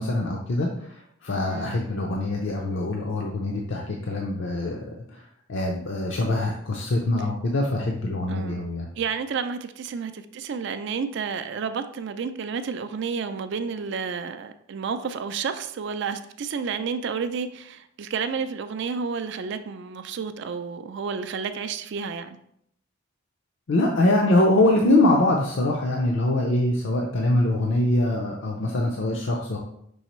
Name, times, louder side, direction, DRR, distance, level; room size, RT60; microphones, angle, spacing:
voice 1, 0.0-4.8 5.1-8.9 23.7-29.6, left 1 dB, 60° left, 0.5 m, -23 dB
voice 2, 1.5-1.8 8.3-8.6 9.0-22.4, right 5 dB, 60° right, 0.3 m, -31 dB
5.4 x 3.2 x 3.0 m
head